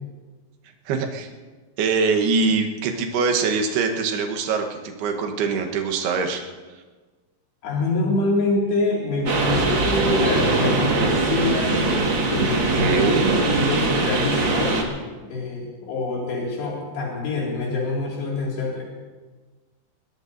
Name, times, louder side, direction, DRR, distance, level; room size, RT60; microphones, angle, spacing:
voice 1, 0.9-1.3 1.8-6.4 12.7-13.3, right 4 dB, 70° right, 4 dB, 3.1 m, -23 dB
voice 2, 7.6-11.8 12.3-13.2 13.4-14.8 15.2-18.8, left 2 dB, 75° left, -4 dB, 4.5 m, -25 dB
sound 1, 9.3-14.8, right 2 dB, 55° right, 1.3 m, -21 dB
21.5 x 20.0 x 2.7 m, 1.3 s
omnidirectional pair, 5.0 m